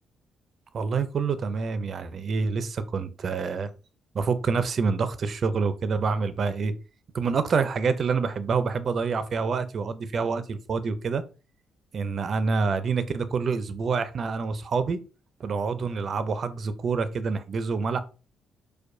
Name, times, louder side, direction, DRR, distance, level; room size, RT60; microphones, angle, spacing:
voice 1, 0.7-3.7 4.1-6.7 7.1-11.2 11.9-15.0 15.4-18.0, right 5 dB, 50° right, 0.5 m, -27 dB
4.6 x 2.2 x 2.6 m
cardioid pair, 90°, 0 cm